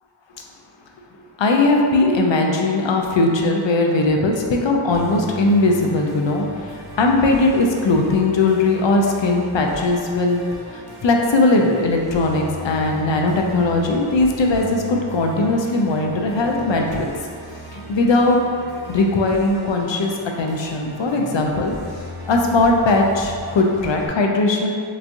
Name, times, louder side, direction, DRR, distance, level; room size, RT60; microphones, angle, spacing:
voice 1, 1.4-10.5 10.7-17.1 17.7-18.4 18.9-21.7 22.3-24.7, left 2 dB, 65° left, 1 dB, 0.5 m, -19 dB
Musical instrument, 4.9-24.1, right 1 dB, 55° right, 0.6 m, -37 dB
3.4 x 3.1 x 2.6 m, 2.2 s
wide cardioid pair, 40°, 47 cm